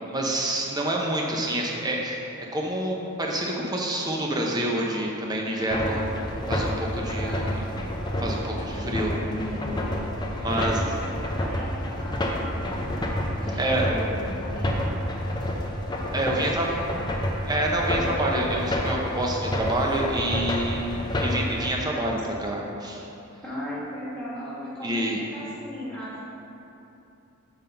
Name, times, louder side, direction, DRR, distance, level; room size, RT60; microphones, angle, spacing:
voice 1, 0.1-2.2 2.5-6.1 6.5-7.5 8.2-9.1 10.4-10.8 13.6-13.8 16.1-16.7 17.5-23.0 24.8-25.2, right 1 dB, 20° right, -1 dB, 0.7 m, -27 dB
sound 1, 5.7-21.7, left 1 dB, 20° left, 0.5 m, -29 dB
voice 2, 7.2-7.9 8.7-10.0 10.5-12.9 13.4-14.9 16.3-17.1 17.9-18.0 23.4-26.2, equal, 5° left, -8 dB, 1.6 m, -37 dB
5.6 x 5.4 x 5.7 m, 2.8 s
head